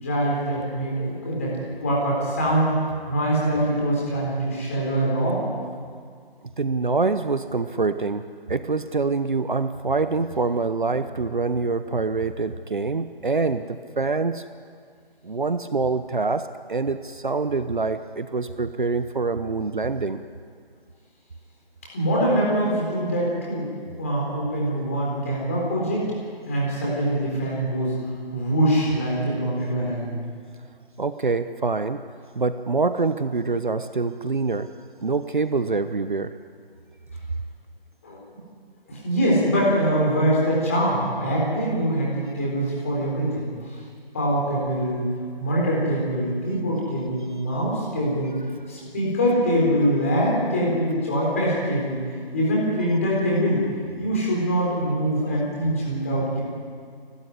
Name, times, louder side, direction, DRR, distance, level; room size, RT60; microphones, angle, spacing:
voice 1, 0.0-2.7 3.1-5.4 21.9-23.7 24.0-26.1 26.5-27.9 28.3-30.2 38.0-38.2 38.9-43.5 44.1-45.1 45.4-48.3 48.7-52.0 52.3-53.6 54.0-56.4, equal, 15° left, -4 dB, 4.0 m, -23 dB
voice 2, 6.6-14.4 15.2-20.2 31.0-32.0 32.4-34.7 35.0-36.3, right 4 dB, 55° right, 10 dB, 1.0 m, -25 dB
30.0 x 12.5 x 9.9 m, 2.1 s
figure-of-eight pair, 180°, 30 cm